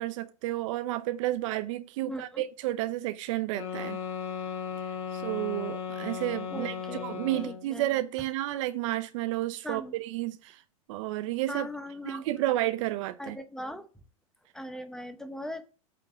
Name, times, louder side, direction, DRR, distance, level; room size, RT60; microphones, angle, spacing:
voice 1, 0.0-4.0 5.1-6.8 7.0-10.6 10.9-11.7 12.0-13.4, right 15 dB, 60° right, 0.7 m, -31 dB
voice 2, 2.0-2.4 6.5-7.9 9.6-10.0 11.5-12.5 13.2-13.9 14.5-15.6, equal, 5° left, 1.0 m, -39 dB
sound 1, 3.5-7.7, left 7 dB, 60° left, 1.7 m, -36 dB
8.4 x 3.9 x 5.6 m
hypercardioid pair, 110°, 19 cm